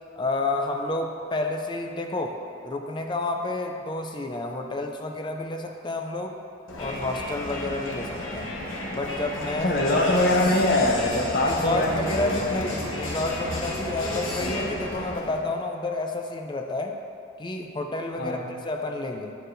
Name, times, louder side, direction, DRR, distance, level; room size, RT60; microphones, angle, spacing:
voice 1, 0.0-6.4 6.8-8.6 8.9-9.7 11.4-17.0 17.4-19.4, left 2 dB, 20° left, 3 dB, 0.4 m, -30 dB
Crowd, 6.7-15.5, left 1 dB, 70° left, 1.0 m, -32 dB
voice 2, 9.6-12.3 18.2-18.5, left 1 dB, 50° left, 1 dB, 0.7 m, -23 dB
9.2 x 6.6 x 2.6 m, 2.5 s
head